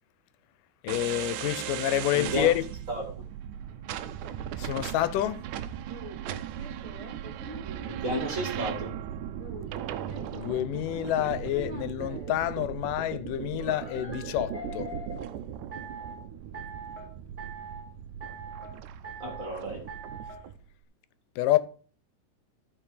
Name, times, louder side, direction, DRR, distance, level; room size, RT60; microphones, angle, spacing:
voice 1, 0.8-2.6 4.6-5.4 10.3-14.9 21.4-21.6, left 14 dB, 90° left, 2.3 m, -28 dB
sound 1, 0.9-20.6, right 10 dB, 80° right, 2.1 m, -38 dB
voice 2, 2.1-2.5 2.9-3.1 7.9-8.9 19.2-19.8, right 1 dB, 30° right, 2.1 m, -32 dB
sound 2, 5.9-8.8 9.4-12.3 13.6-15.2 15.7-16.2 16.5-17.1 17.4-17.8 18.2-18.7 19.0-19.5 19.9-20.4, right 2 dB, 10° right, 2.3 m, -43 dB
15.0 x 5.0 x 5.0 m
omnidirectional pair, 3.7 m